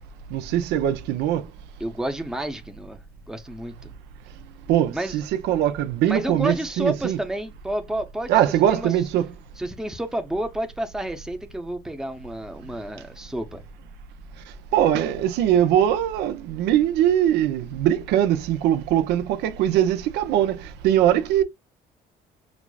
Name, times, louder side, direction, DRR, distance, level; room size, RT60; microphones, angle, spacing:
voice 1, 0.3-1.4 4.7-7.2 8.3-9.3 14.7-21.4, right 11 dB, 85° right, 0.5 m, -21 dB
voice 2, 1.8-3.0 3.3-3.9 4.9-5.2 6.0-8.4 8.7-8.9 9.6-13.6, right 1 dB, 5° right, 0.6 m, -30 dB
6.0 x 2.0 x 2.3 m
cardioid pair, 110°, 17 cm